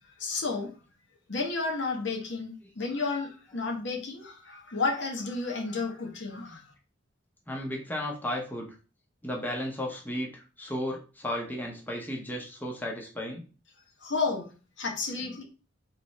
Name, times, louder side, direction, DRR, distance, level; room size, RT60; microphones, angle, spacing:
voice 1, 0.2-0.7 1.3-6.6 14.0-14.5 14.8-15.4, left 3 dB, 60° left, 2 dB, 1.0 m, -32 dB
voice 2, 7.5-8.7 9.2-13.4, left 1 dB, 10° left, 0 dB, 0.8 m, -34 dB
3.3 x 3.1 x 4.1 m, 0.34 s
head